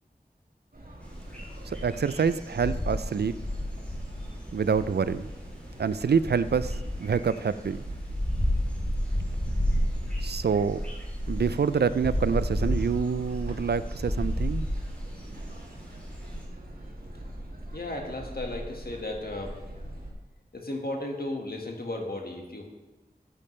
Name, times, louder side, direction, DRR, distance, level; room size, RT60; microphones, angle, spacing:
sound 1, 0.7-20.1, right 1 dB, 60° right, 2.0 m, -42 dB
sound 2, 1.0-16.4, equal, 10° left, 3.3 m, -32 dB
voice 1, 1.8-3.4 4.5-5.3 5.8-7.8 10.2-10.8 11.3-14.7, right 6 dB, 75° right, 15 dB, 0.4 m, -26 dB
voice 2, 17.7-19.6 20.5-22.7, left 1 dB, 65° left, 1 dB, 1.7 m, -35 dB
13.5 x 8.6 x 3.2 m, 1.1 s
wide cardioid pair, 50°, 17 cm